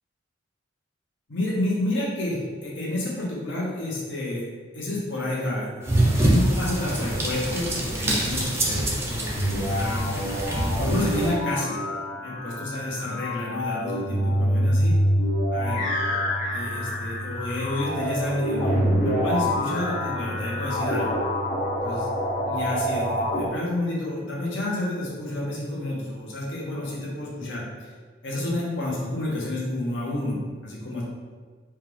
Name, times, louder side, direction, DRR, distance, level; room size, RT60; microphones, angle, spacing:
voice 1, 1.3-4.5 4.7-10.1 10.8-11.8 12.2-15.0 15.5-15.8 16.5-21.2 21.8-22.1 22.4-27.6 28.2-31.0, left 1 dB, 70° left, -5 dB, 1.1 m, -30 dB
sound 1, 5.8-11.3, right 1 dB, 15° right, 0.5 m, -25 dB
sound 2, 9.3-23.5, equal, 40° left, 0.8 m, -26 dB
4.5 x 2.4 x 3.4 m, 1.5 s
head